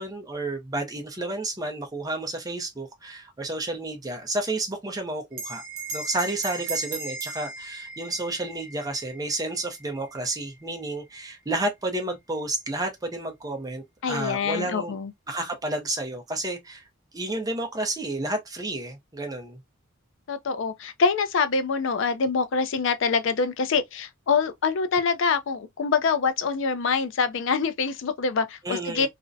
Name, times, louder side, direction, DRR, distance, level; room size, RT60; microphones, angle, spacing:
voice 1, 0.0-5.6 5.9-14.9 15.3-16.8 17.1-19.6 28.6-29.1, right 2 dB, 20° right, 0.5 m, -31 dB
Bell, 5.3-10.2, right 3 dB, 65° right, 0.8 m, -37 dB
voice 2, 14.0-15.1 20.3-29.1, left 5 dB, 65° left, 0.4 m, -25 dB
2.4 x 2.1 x 2.5 m
head